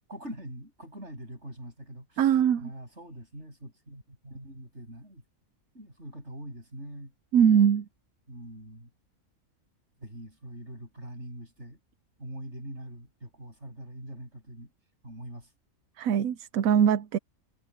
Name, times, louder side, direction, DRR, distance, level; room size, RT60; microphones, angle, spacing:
voice 1, 0.1-5.2 5.7-7.1 8.3-8.9 10.0-11.8 12.2-14.7 15.0-15.5, right 1 dB, 50° right, 8.6 m, -43 dB
voice 2, 2.2-2.7 7.3-7.9 16.0-17.2, right 8 dB, 75° right, 1.1 m, -22 dB
omnidirectional pair, 1.5 m